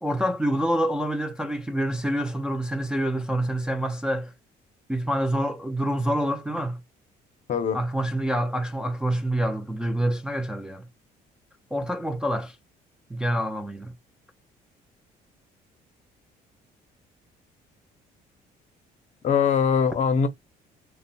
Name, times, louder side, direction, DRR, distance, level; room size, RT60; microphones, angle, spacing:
voice 1, 0.0-4.3 4.9-6.8 7.7-10.8 11.7-12.6 13.1-13.9, right 1 dB, 5° right, 0.3 m, -27 dB
voice 2, 7.5-7.8 19.2-20.3, left 6 dB, 45° left, 0.6 m, -22 dB
2.8 x 2.1 x 2.6 m
cardioid pair, 110°, 17 cm